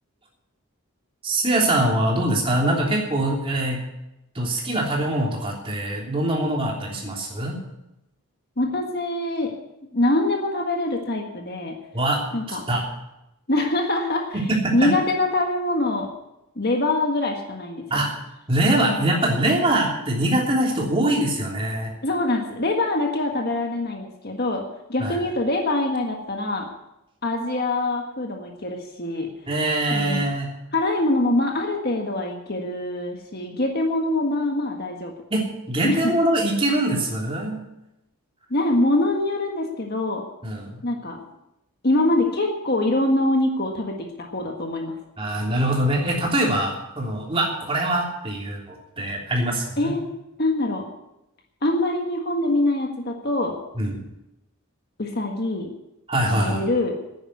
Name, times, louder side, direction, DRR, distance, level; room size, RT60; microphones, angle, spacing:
voice 1, 1.2-3.8 4.3-7.6 11.9-12.8 14.3-14.9 17.9-18.1 18.5-21.9 25.0-25.2 29.5-30.5 35.3-37.6 40.4-40.8 45.2-49.9 53.7-54.0 56.1-56.6, right 1 dB, 25° right, -1 dB, 3.3 m, -23 dB
voice 2, 8.6-9.5 9.9-11.7 12.3-12.7 13.5-14.4 14.7-16.1 16.5-17.8 18.8-19.0 22.0-24.6 24.9-26.7 27.2-29.3 29.9-30.2 30.7-35.1 35.8-36.1 38.5-40.3 40.8-41.2 41.8-45.0 49.8-50.1 50.4-50.9 51.6-53.6 55.0-55.7 56.3-57.0, left 2 dB, 45° left, 2 dB, 1.6 m, -24 dB
10.5 x 9.8 x 9.4 m, 0.90 s
head